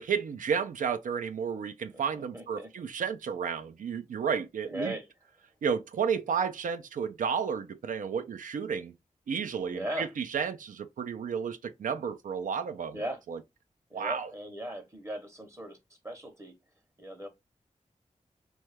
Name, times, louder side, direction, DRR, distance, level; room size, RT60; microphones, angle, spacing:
voice 1, 0.0-4.9 5.6-8.9 9.3-13.0 13.3-13.4 13.9-14.3, right 6 dB, 85° right, 0.4 m, -32 dB
voice 2, 2.1-2.7 4.6-5.1 9.6-10.1 12.9-13.2 13.9-15.8 16.0-16.5 17.0-17.3, right 1 dB, 20° right, 0.7 m, -38 dB
3.1 x 2.3 x 3.2 m
wide cardioid pair, 80°, 13 cm